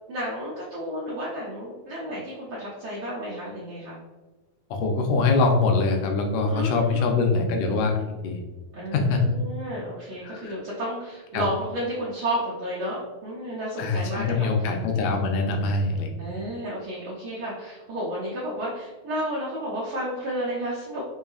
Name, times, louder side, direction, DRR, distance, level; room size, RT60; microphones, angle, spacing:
voice 1, 0.1-4.0 6.5-7.2 8.7-14.7 16.2-21.0, equal, 80° right, -8 dB, 1.2 m, -32 dB
voice 2, 4.7-7.9 8.2-8.4 8.9-9.4 10.2-10.6 11.3-11.4 13.8-16.1, left 3 dB, 75° left, 3 dB, 1.8 m, -23 dB
5.2 x 2.8 x 2.3 m, 1.2 s
omnidirectional pair, 3.4 m